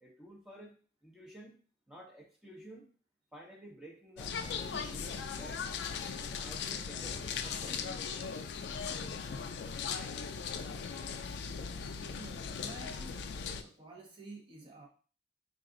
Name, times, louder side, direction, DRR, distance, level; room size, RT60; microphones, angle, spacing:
voice 1, 0.0-0.8 1.0-1.6 1.9-2.9 3.3-5.7 6.2-8.1, right 1 dB, 5° right, -2 dB, 0.8 m, -51 dB
sound 1, 4.2-13.6, left 6 dB, 70° left, 0.4 m, -38 dB
voice 2, 12.1-13.3 13.6-14.9, right 2 dB, 30° right, -1 dB, 0.9 m, -50 dB
4.0 x 2.5 x 3.7 m, 0.40 s
head